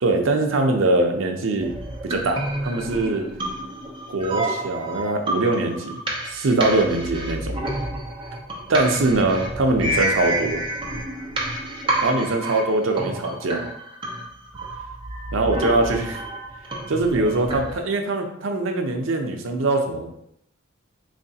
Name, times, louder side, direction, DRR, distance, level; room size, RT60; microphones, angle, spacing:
voice 1, 0.0-1.7 2.0-3.3 4.1-6.0 6.3-7.5 8.7-10.6 12.0-13.6 15.3-16.2 16.9-20.1, right 2 dB, 80° right, 3 dB, 0.6 m, -22 dB
sound 1, 1.6-17.7, right 1 dB, 25° right, 0.6 m, -29 dB
3.9 x 3.2 x 2.7 m, 0.74 s
head